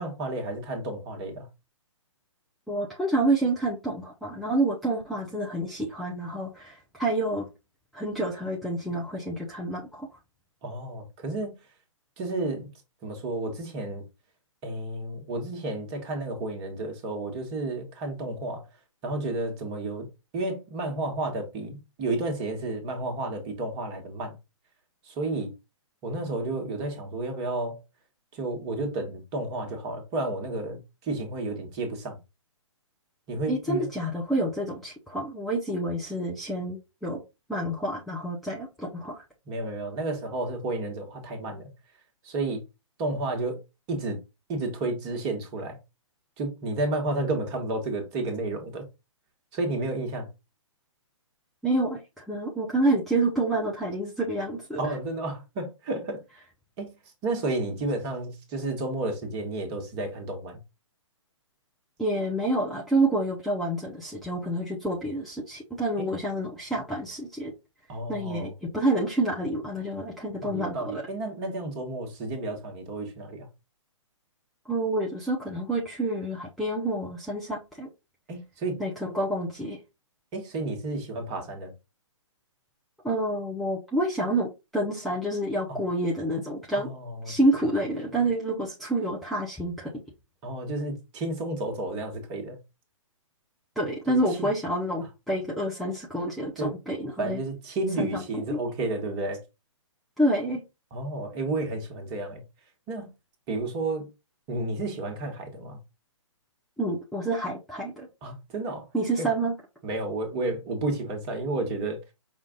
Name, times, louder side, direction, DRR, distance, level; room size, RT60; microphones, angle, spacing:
voice 1, 0.0-1.5 10.6-11.5 12.2-12.7 13.0-14.0 14.6-18.6 19.0-20.1 20.3-24.3 25.1-25.5 26.0-27.8 28.3-32.2 33.3-33.9 39.5-41.7 42.2-42.6 43.0-43.6 43.9-44.2 44.5-45.8 46.4-48.8 49.5-50.3 54.8-56.2 56.8-56.9 57.2-60.6 66.0-66.1 67.9-68.5 70.4-73.5 78.3-78.8 80.3-81.7 85.7-85.8 86.8-87.3 90.4-92.6 94.1-94.5 96.6-96.8 97.2-99.4 100.9-102.4 102.9-103.1 103.5-104.1 104.5-105.8 108.2-108.9 109.2-109.3 109.8-112.0, right 2 dB, 25° right, 1.4 m, -31 dB
voice 2, 2.7-7.5 7.9-10.1 33.5-37.2 37.5-39.2 51.6-55.0 62.0-67.5 68.1-71.0 74.7-77.9 78.8-79.8 83.0-86.9 87.3-89.9 93.8-97.4 98.0-98.2 98.5-98.6 100.2-100.6 106.8-108.1 108.9-109.5, right 1 dB, ahead, 0.6 m, -28 dB
5.6 x 2.4 x 3.7 m
figure-of-eight pair, 135°, 17 cm